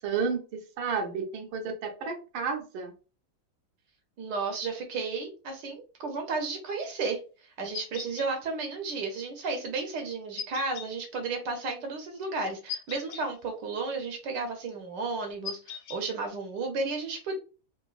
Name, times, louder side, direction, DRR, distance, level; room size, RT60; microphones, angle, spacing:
voice 1, 0.0-2.9, right 5 dB, 85° right, 3 dB, 1.6 m, -32 dB
voice 2, 4.2-7.2 7.6-17.3, right 4 dB, 70° right, 4 dB, 1.2 m, -33 dB
sound 1, 7.7-8.3 10.4-10.9 12.7-13.2 15.4-16.0, left 7 dB, 70° left, 1.4 m, -38 dB
3.9 x 2.6 x 2.3 m, 0.35 s
omnidirectional pair, 2.2 m